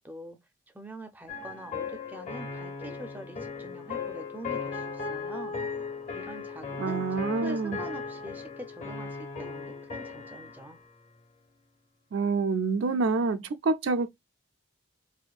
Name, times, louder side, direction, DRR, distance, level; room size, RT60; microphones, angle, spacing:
voice 1, 0.0-0.4 0.7-5.6 6.1-10.8, right 1 dB, 10° right, 0.5 m, -44 dB
sound 1, 1.3-10.8, left 5 dB, 40° left, 0.7 m, -37 dB
voice 2, 6.8-7.8 12.1-14.1, right 4 dB, 70° right, 0.4 m, -27 dB
4.2 x 2.6 x 2.3 m
head